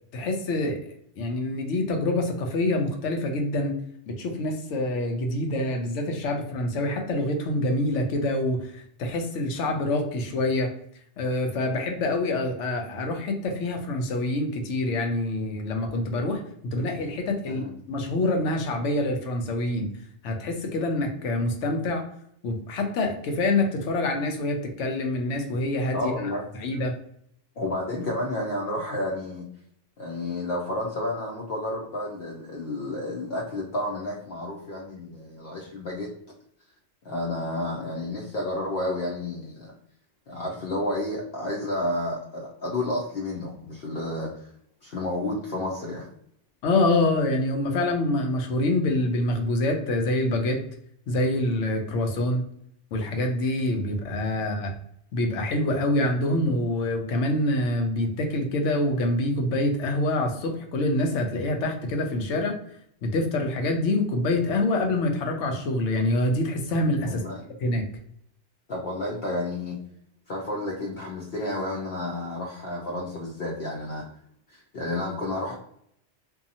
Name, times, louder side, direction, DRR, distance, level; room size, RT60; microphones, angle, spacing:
voice 1, 0.1-0.8 1.2-3.8 4.1-10.7 11.2-16.4 16.7-19.9 20.2-22.1 22.4-26.3 26.6-26.9 46.6-50.6 51.1-52.4 52.9-54.7 55.1-62.6 63.0-67.2 67.6-67.9, left 2 dB, 90° left, 3 dB, 1.0 m, -26 dB
voice 2, 25.9-26.4 27.6-29.4 30.0-36.1 37.0-39.7 40.3-44.5 44.8-46.1 67.0-67.4 68.7-69.8 70.3-74.1 74.5-75.5, left 1 dB, 60° left, -3 dB, 0.8 m, -31 dB
2.7 x 2.3 x 2.6 m, 0.70 s
omnidirectional pair, 1.2 m